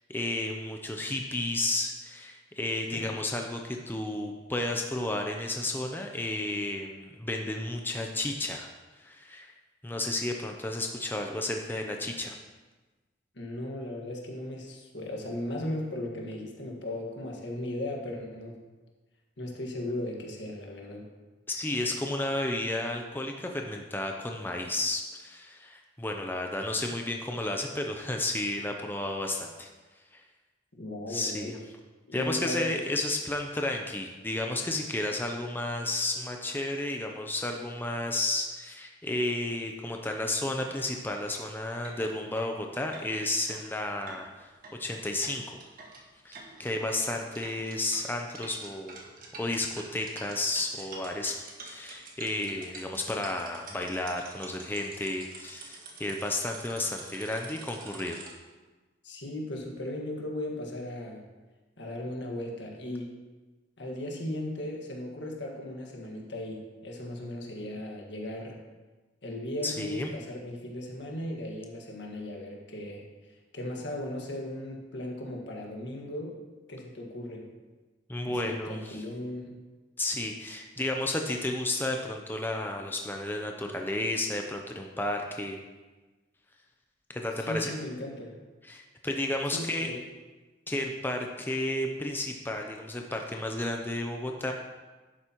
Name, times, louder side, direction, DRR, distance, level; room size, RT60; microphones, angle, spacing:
voice 1, 0.1-8.7 9.0-9.5 9.8-12.3 21.5-29.7 30.1-30.2 31.1-31.6 32.1-44.5 44.8-45.6 46.2-49.0 49.4-58.2 69.6-70.1 78.1-79.0 80.0-85.6 87.1-87.7 88.7-89.9 90.7-94.5, left 2 dB, 10° left, 2 dB, 0.6 m, -32 dB
voice 2, 13.3-18.6 19.4-21.1 30.8-31.6 32.1-32.7 59.0-61.2 61.8-63.1 63.8-68.6 69.2-73.0 73.5-76.4 76.7-77.5 78.2-79.6 87.4-88.4 89.5-90.0, left 1 dB, 75° left, 0 dB, 1.7 m, -37 dB
crazy toy, 40.4-40.5 40.9-41.0 41.3-41.4 41.8-58.3, right 3 dB, 50° right, 1.6 m, -47 dB
11.0 x 8.3 x 3.0 m, 1.3 s
head